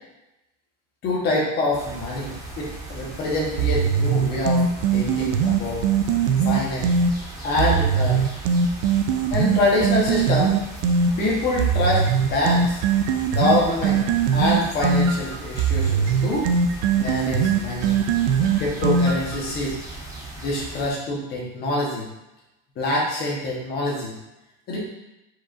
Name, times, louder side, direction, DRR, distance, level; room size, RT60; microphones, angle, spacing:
voice 1, 1.0-4.7 4.9-5.9 6.4-6.9 7.4-8.3 9.3-10.6 11.2-12.8 13.3-14.1 14.3-16.5 16.9-18.0 18.6-19.8 20.4-22.0 22.8-24.1 24.7-24.8, left 2 dB, 25° left, -4 dB, 1.1 m, -25 dB
sound 1, 1.7-20.9, right 2 dB, 10° right, 0.7 m, -38 dB
sound 2, 3.6-7.1 7.6-11.1 11.6-19.4, right 6 dB, 70° right, 0.5 m, -21 dB
4.9 x 4.2 x 2.5 m, 0.93 s
cardioid pair, 180°, 37 cm